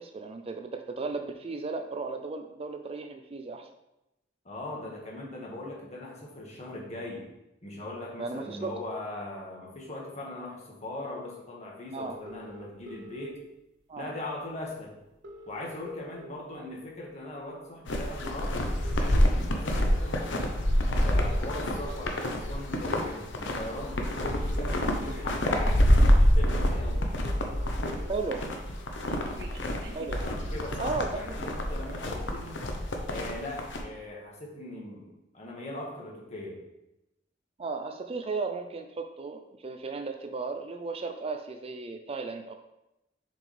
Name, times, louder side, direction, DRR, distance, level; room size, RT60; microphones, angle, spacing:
voice 1, 0.0-3.7 8.2-8.7 11.9-12.2 13.9-14.1 16.6-16.7 28.1-28.5 29.9-30.2 30.8-31.1 37.6-42.5, right 4 dB, 35° right, 6 dB, 0.4 m, -35 dB
voice 2, 4.5-7.2 7.6-13.4 14.0-14.9 15.5-18.6 19.0-20.6 20.8-25.9 26.1-27.1 30.3-32.6 33.1-36.6, left 1 dB, 40° left, -3 dB, 1.8 m, -40 dB
sound 1, 12.3-13.3 14.4-14.5 14.8-14.9 15.1-16.5 17.0-17.2 18.1-19.2 20.0-20.2 21.1-22.3 23.5-23.6 24.1-25.2 25.9-26.0 26.3-26.4 26.7-26.8 26.9-28.2 28.6-30.7, equal, 65° right, 0.8 m, -46 dB
sound 2, 17.9-33.8, equal, 85° left, 0.9 m, -27 dB
7.1 x 5.1 x 3.4 m, 0.91 s
head